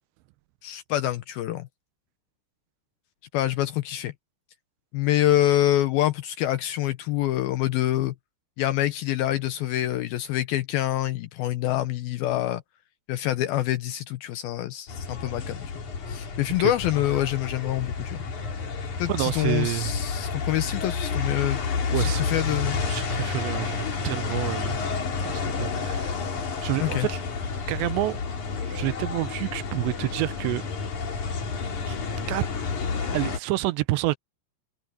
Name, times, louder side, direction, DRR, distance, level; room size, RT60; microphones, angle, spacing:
voice 1, 0.6-1.7 3.3-4.1 4.9-8.1 8.6-12.6 13.1-15.7 16.1-18.2 19.0-21.6 21.9-22.8 26.8-27.1, left 13 dB, 80° left, 2.2 m, -26 dB
sound 1, 14.9-33.4, left 5 dB, 45° left, 4.3 m, -30 dB
voice 2, 19.1-20.0 21.9-22.3 22.8-25.0 25.2-26.2 26.6-27.2 27.7-28.2 28.6-30.6 31.9-32.0 32.3-32.5 33.1-34.2, right 18 dB, 85° right, 2.8 m, -28 dB
omnidirectional pair, 5.1 m